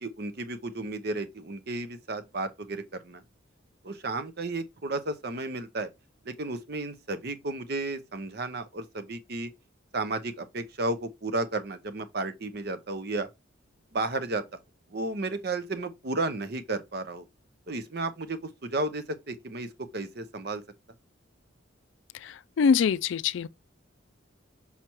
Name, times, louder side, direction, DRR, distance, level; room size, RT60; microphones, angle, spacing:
voice 1, 0.0-3.2 3.8-5.9 6.2-9.5 9.9-13.3 13.9-14.6 14.9-17.2 17.7-20.6, right 2 dB, 50° right, 0.7 m, -33 dB
voice 2, 22.6-23.5, left 6 dB, 65° left, 0.3 m, -23 dB
5.8 x 5.7 x 3.0 m
head